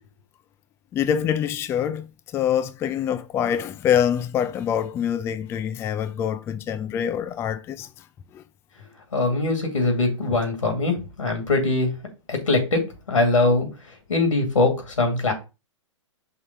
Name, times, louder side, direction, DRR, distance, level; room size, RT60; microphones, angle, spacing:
voice 1, 0.9-2.1 2.3-8.0 8.3-8.4, left 9 dB, 15° left, 0.3 m, -25 dB
voice 2, 9.1-11.9 12.3-13.7 14.1-15.3, left 2 dB, 90° left, 2.5 m, -22 dB
5.6 x 3.4 x 5.3 m
hypercardioid pair, 125°, 16 cm